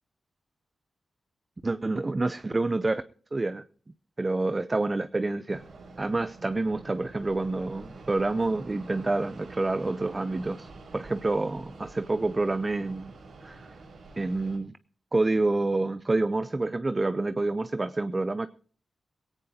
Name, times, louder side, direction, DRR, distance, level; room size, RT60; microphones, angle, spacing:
voice 1, 1.6-3.0 3.3-3.6 4.2-5.6 6.0-13.1 13.4-13.7 14.2-14.7 15.1-18.5, right 2 dB, 25° right, 0.6 m, -28 dB
Fixed-wing aircraft airplane, 5.5-14.6, right 3 dB, 70° right, 5.6 m, -47 dB
18.5 x 17.0 x 2.8 m
cardioid pair, 90°, 0 cm